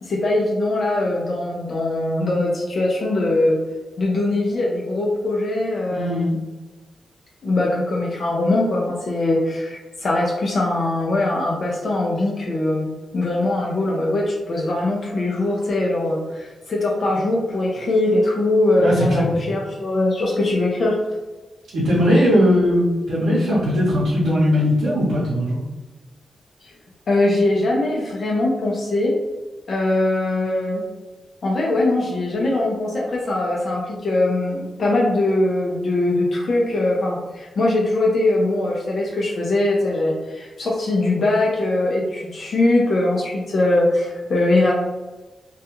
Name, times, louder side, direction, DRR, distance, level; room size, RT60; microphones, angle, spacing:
voice 1, 0.0-3.6 4.0-6.4 7.4-21.0 26.6-26.7 27.1-29.1 29.7-30.8 31.4-44.7, left 2 dB, 65° left, -2 dB, 0.4 m, -21 dB
voice 2, 5.9-6.3 18.8-19.4 21.7-25.6, equal, 90° right, -8 dB, 0.7 m, -19 dB
2.3 x 2.2 x 2.9 m, 1.2 s
cardioid pair, 60°, 0 cm